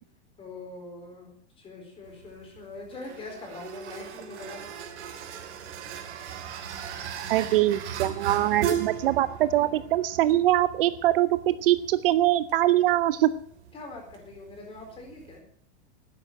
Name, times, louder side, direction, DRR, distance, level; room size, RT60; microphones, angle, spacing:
voice 1, 0.4-4.7 13.7-15.4, left 3 dB, 15° left, 2 dB, 4.3 m, -43 dB
sound 1, 2.0-15.4, right 8 dB, 85° right, 3.3 m, -38 dB
voice 2, 7.3-13.3, right 14 dB, 55° right, 14 dB, 0.7 m, -23 dB
12.0 x 10.0 x 8.6 m, 0.63 s
supercardioid pair, 175°, 33 cm